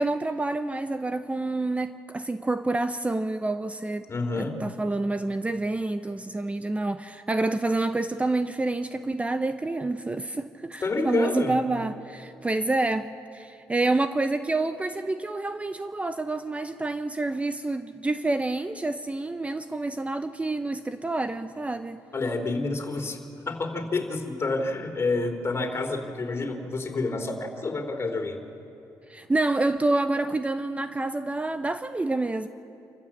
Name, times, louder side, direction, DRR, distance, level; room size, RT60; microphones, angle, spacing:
voice 1, 0.0-4.1 4.4-22.0 29.1-32.5, right 2 dB, 15° right, 0.7 m, -28 dB
voice 2, 4.1-4.6 10.8-11.6 22.1-28.4, left 3 dB, 35° left, 3.3 m, -29 dB
28.0 x 15.0 x 7.4 m
cardioid pair, 75°, 8 cm